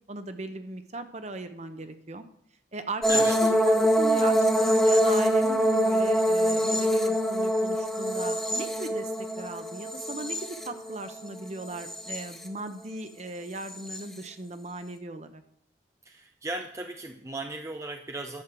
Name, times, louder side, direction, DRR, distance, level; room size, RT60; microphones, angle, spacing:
voice 1, 0.1-2.2 2.7-15.4, right 2 dB, 40° right, 9 dB, 1.0 m, -38 dB
sound 1, 3.0-11.2 11.6-12.4 13.7-14.0, equal, ahead, 0.9 m, -24 dB
voice 2, 16.1-18.4, right 2 dB, 15° right, 5 dB, 0.5 m, -36 dB
11.0 x 6.6 x 7.6 m, 0.69 s
head